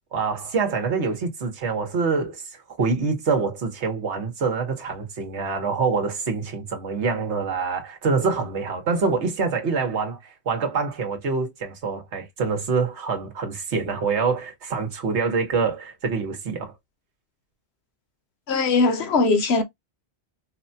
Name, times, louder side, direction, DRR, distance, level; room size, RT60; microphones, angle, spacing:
voice 1, 0.1-2.4 2.8-16.7, right 4 dB, 85° right, 1.4 m, -25 dB
voice 2, 18.5-19.6, left 3 dB, 75° left, 1.1 m, -20 dB
4.7 x 2.2 x 2.6 m
omnidirectional pair, 1.1 m